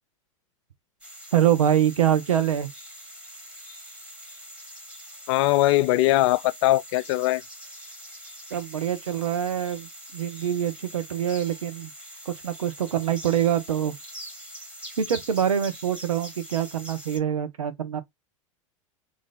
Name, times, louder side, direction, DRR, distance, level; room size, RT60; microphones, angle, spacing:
sound 1, 1.0-17.2, equal, 5° right, 1.3 m, -43 dB
voice 1, 1.3-2.7 8.5-11.9 12.3-13.9 15.0-18.0, right 9 dB, 85° right, 0.7 m, -25 dB
voice 2, 5.3-7.4, left 17 dB, 55° left, 0.4 m, -21 dB
3.1 x 2.7 x 3.8 m
hypercardioid pair, 90°, 17 cm